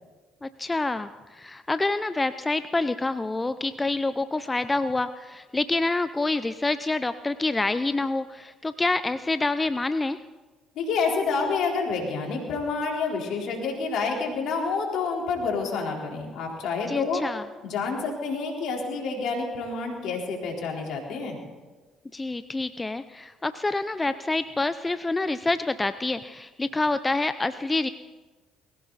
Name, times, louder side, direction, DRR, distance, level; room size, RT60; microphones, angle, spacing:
voice 1, 0.4-10.2 16.9-17.4 22.1-27.9, left 2 dB, 20° left, 12 dB, 0.6 m, -27 dB
voice 2, 10.8-17.2 17.6-21.4, left 4 dB, 70° left, 0 dB, 4.0 m, -28 dB
21.0 x 16.0 x 4.1 m, 1.3 s
hypercardioid pair, 60°, 0 cm